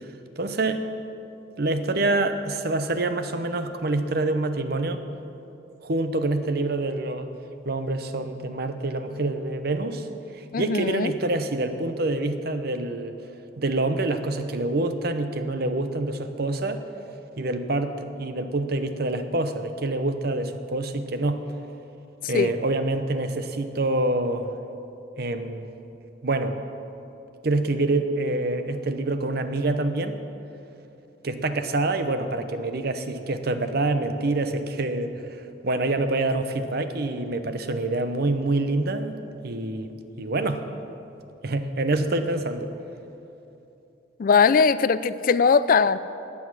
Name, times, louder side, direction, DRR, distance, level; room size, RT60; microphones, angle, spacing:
voice 1, 0.4-0.9 1.6-5.1 5.8-7.3 7.6-10.1 10.3-13.2 13.6-16.9 17.4-21.4 22.3-24.5 25.2-25.7 26.2-26.6 27.4-30.2 31.2-39.2 39.4-40.6 41.4-42.7, right 2 dB, 55° right, 9 dB, 0.8 m, -26 dB
voice 2, 10.5-11.1 22.2-22.5 44.2-46.0, left 5 dB, 45° left, 15 dB, 0.3 m, -20 dB
15.5 x 9.8 x 6.2 m, 2.9 s
head